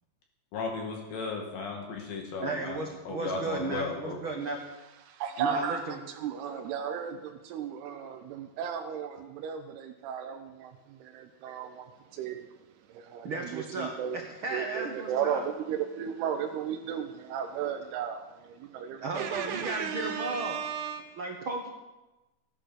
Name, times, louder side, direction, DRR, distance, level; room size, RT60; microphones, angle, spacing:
voice 1, 0.5-2.8 3.1-4.2, left 3 dB, 65° left, 1 dB, 3.8 m, -35 dB
voice 2, 2.4-4.6 5.4-6.0 13.2-15.4 19.0-20.6 21.2-21.7, right 3 dB, 70° right, 1 dB, 1.2 m, -34 dB
voice 3, 5.2-5.8 6.1-12.5 12.9-14.2 14.5-21.2, right 8 dB, 90° right, 5 dB, 2.9 m, -35 dB
16.5 x 11.0 x 6.4 m, 1.1 s
omnidirectional pair, 4.5 m